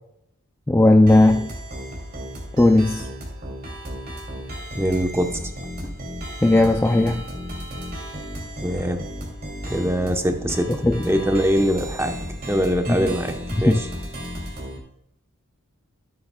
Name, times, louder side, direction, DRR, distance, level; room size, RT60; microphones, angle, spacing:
voice 1, 0.7-1.5 2.6-3.1 6.4-7.2 10.8-11.0 13.0-13.1 13.7-13.8, left 2 dB, 10° left, 5 dB, 0.3 m, -16 dB
sound 1, 1.1-14.8, equal, 45° right, 2.6 m, -34 dB
voice 2, 4.7-5.4 5.8-5.9 8.6-9.0 9.7-10.7 11.0-12.2 12.5-13.9, equal, 10° right, 5 dB, 0.8 m, -23 dB
13.0 x 8.9 x 2.2 m, 0.76 s
head